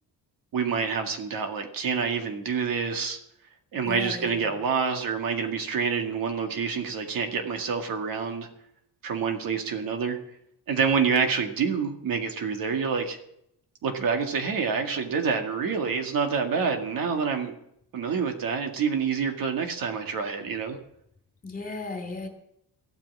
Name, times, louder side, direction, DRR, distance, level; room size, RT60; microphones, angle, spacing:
voice 1, 0.5-3.2 3.7-8.5 9.0-10.2 10.7-13.2 13.8-17.6 17.9-20.8, right 5 dB, 55° right, 4 dB, 2.0 m, -27 dB
voice 2, 3.8-4.6 21.4-22.3, left 3 dB, 20° left, 4 dB, 2.7 m, -36 dB
15.5 x 9.0 x 7.3 m, 0.75 s
cardioid pair, 150°, 40 cm